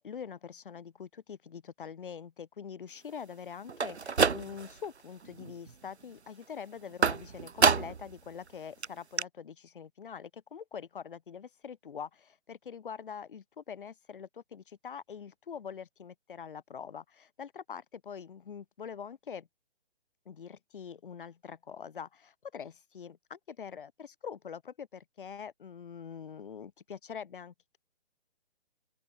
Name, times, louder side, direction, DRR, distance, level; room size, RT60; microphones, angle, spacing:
voice 1, 0.0-19.5 20.2-27.8, left 7 dB, 55° left, 6.7 m, -44 dB
sound 1, 3.7-4.9 5.2-5.7 7.0-8.1 8.5-8.6 8.8-8.9 9.2-9.3, right 5 dB, 85° right, 3.0 m, -27 dB
open air
hypercardioid pair, 165°, 32 cm